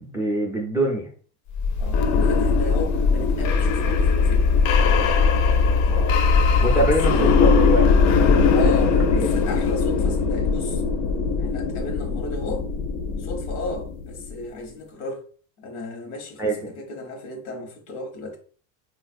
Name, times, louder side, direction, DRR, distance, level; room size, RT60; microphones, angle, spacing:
voice 1, 0.1-1.1 5.9-6.2 6.6-8.1 8.6-9.3 16.4-16.7, right 1 dB, 5° right, 0.3 m, -25 dB
sound 1, 1.5-14.3, left 5 dB, 70° left, 0.6 m, -20 dB
voice 2, 1.8-4.5 6.5-7.5 8.5-10.8 11.4-12.7 13.2-15.2 15.6-18.4, left 2 dB, 85° left, 1.0 m, -34 dB
3.9 x 2.4 x 2.5 m
supercardioid pair, 140°, 41 cm